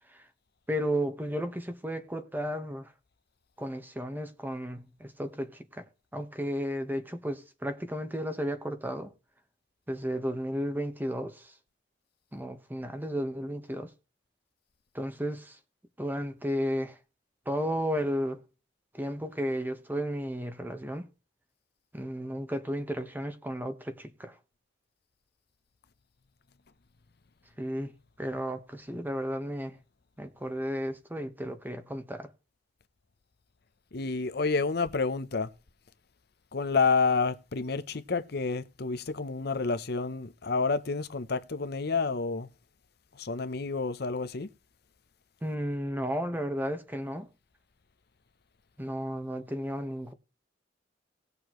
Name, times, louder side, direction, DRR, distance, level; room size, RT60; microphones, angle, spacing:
voice 1, 0.7-2.9 3.6-5.8 6.1-9.1 9.9-11.5 12.3-13.9 14.9-15.6 16.0-17.0 17.5-18.4 18.9-21.1 21.9-24.3 27.6-27.9 28.2-29.8 30.2-32.3 45.4-47.3 48.8-50.1, equal, 10° right, 1.2 m, -33 dB
voice 2, 33.9-35.5 36.5-42.5 43.2-44.5, left 4 dB, 60° left, 0.8 m, -29 dB
18.5 x 6.8 x 3.1 m
head